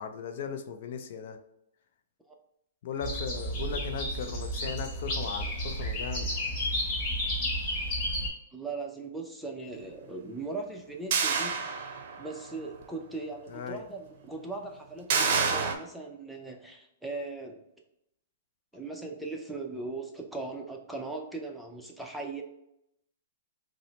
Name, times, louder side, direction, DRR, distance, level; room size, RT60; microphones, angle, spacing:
voice 1, 0.0-1.4 2.8-6.4 13.5-13.8, left 6 dB, 60° left, 7 dB, 0.4 m, -37 dB
sound 1, 3.0-8.3, equal, 40° left, 1.3 m, -32 dB
voice 2, 8.5-11.6 12.2-17.6 18.7-22.4, right 3 dB, ahead, 1 dB, 0.5 m, -39 dB
sound 2, 11.1-12.4 12.8-12.9 15.1-15.8, right 5 dB, 50° right, 0.6 m, -27 dB
4.9 x 2.1 x 2.8 m, 0.79 s
hypercardioid pair, 145°, 0 cm